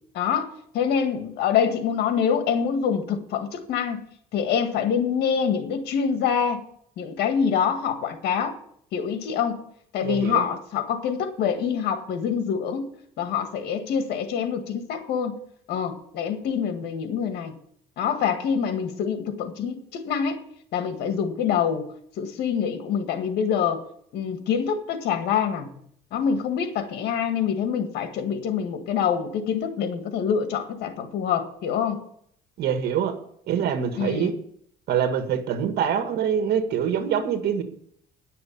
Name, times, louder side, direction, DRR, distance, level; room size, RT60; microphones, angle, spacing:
voice 1, 0.1-4.0 4.3-6.6 7.0-8.6 8.9-9.6 9.9-12.9 13.2-15.4 15.7-17.5 18.0-20.4 20.7-21.9 22.2-23.8 24.1-25.8 26.1-32.0 34.0-34.4, left 7 dB, 80° left, 7 dB, 1.8 m, -25 dB
voice 2, 10.0-10.4 32.6-33.2 33.5-34.3 34.9-37.6, right 8 dB, 70° right, 7 dB, 2.0 m, -25 dB
10.5 x 6.9 x 8.5 m, 0.64 s
cardioid pair, 110°, 17 cm